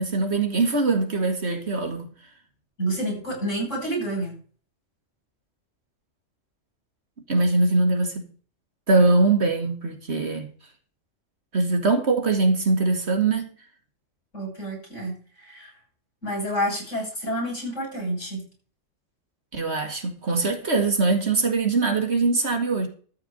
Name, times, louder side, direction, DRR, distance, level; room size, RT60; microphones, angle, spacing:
voice 1, 0.0-2.1 7.3-8.2 8.9-10.5 11.5-13.5 19.5-22.9, right 3 dB, 55° right, 2.4 m, -22 dB
voice 2, 2.8-4.4 14.3-15.7 16.2-18.5, right 1 dB, 65° left, 8.1 m, -29 dB
13.5 x 4.9 x 8.8 m
omnidirectional pair, 1.3 m